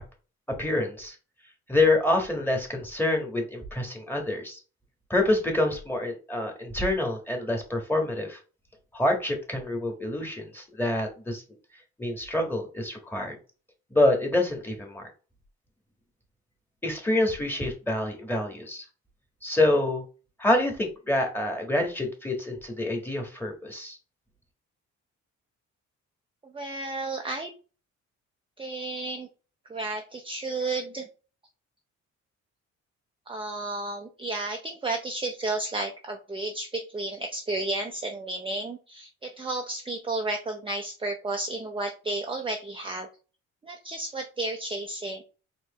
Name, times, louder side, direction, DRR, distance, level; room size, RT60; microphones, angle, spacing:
voice 1, 0.6-1.1 1.7-4.6 5.1-8.4 8.9-11.4 12.0-13.3 13.9-15.1 16.8-18.8 19.4-20.0 20.4-24.0, left 1 dB, 5° left, 2 dB, 1.5 m, -26 dB
voice 2, 26.4-27.5 28.6-29.3 29.7-31.1 33.3-43.1 43.6-45.2, right 2 dB, 15° right, 3 dB, 0.6 m, -32 dB
4.5 x 3.1 x 3.1 m, 0.35 s
cardioid pair, 90°, 30 cm